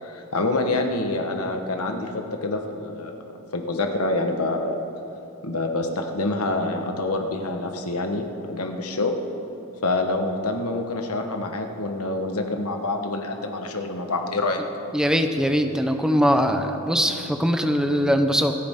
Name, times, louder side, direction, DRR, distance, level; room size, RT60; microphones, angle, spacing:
voice 1, 0.0-3.2 3.5-4.8 5.4-9.1 9.8-14.6, left 2 dB, 75° left, 4 dB, 1.4 m, -26 dB
voice 2, 14.9-18.5, equal, 5° right, 5 dB, 0.8 m, -21 dB
27.5 x 9.8 x 3.7 m, 3.0 s
head